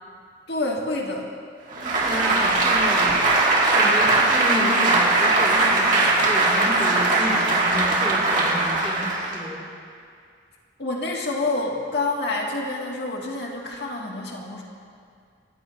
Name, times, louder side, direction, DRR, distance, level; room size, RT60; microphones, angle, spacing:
voice 1, 0.5-1.3 10.8-14.6, left 2 dB, 60° left, -1 dB, 2.1 m, -27 dB
voice 2, 1.7-3.2 3.7-9.6, equal, 5° left, -7 dB, 2.4 m, -31 dB
Applause, 1.7-9.5, right 2 dB, 45° right, 2.1 m, -20 dB
26.5 x 14.5 x 2.7 m, 2.3 s
head